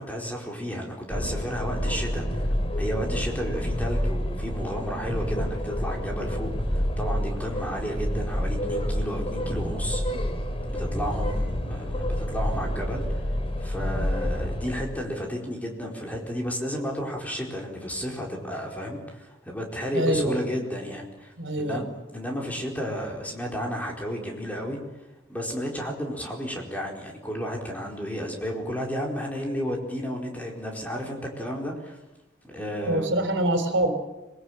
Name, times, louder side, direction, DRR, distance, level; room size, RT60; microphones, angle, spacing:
voice 1, 0.0-2.5 2.8-10.0 10.7-13.3 13.6-21.8 22.1-24.8 25.3-32.0 32.4-33.1, equal, 10° left, 0 dB, 4.6 m, -32 dB
sound 1, 1.1-14.8, equal, 30° left, 3.3 m, -28 dB
voice 2, 19.9-20.4 21.4-21.9 32.9-33.9, right 1 dB, 70° right, 7 dB, 3.9 m, -25 dB
26.0 x 21.0 x 8.9 m, 1.0 s
head